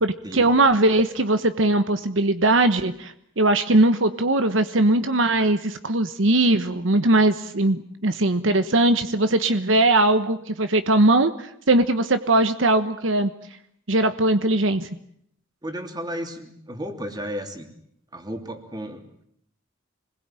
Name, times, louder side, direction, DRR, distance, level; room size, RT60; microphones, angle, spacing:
voice 1, 0.0-13.3 13.9-14.9, right 2 dB, 75° right, 10 dB, 1.2 m, -20 dB
voice 2, 15.6-17.7 18.1-19.1, equal, 20° right, 5 dB, 3.2 m, -33 dB
26.5 x 21.0 x 9.1 m, 0.71 s
head